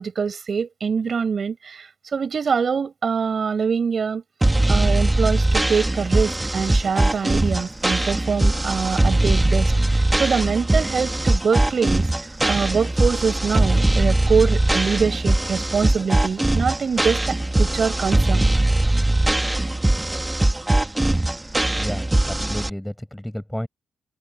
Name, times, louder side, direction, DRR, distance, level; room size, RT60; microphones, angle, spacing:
voice 1, 0.0-4.2 4.7-12.1 12.5-18.5, right 6 dB, 50° right, 5.2 m, -24 dB
sound 1, 4.4-22.7, right 1 dB, 15° right, 2.2 m, -20 dB
voice 2, 21.8-23.7, equal, 5° left, 5.7 m, -31 dB
open air
cardioid pair, 75°, 0 cm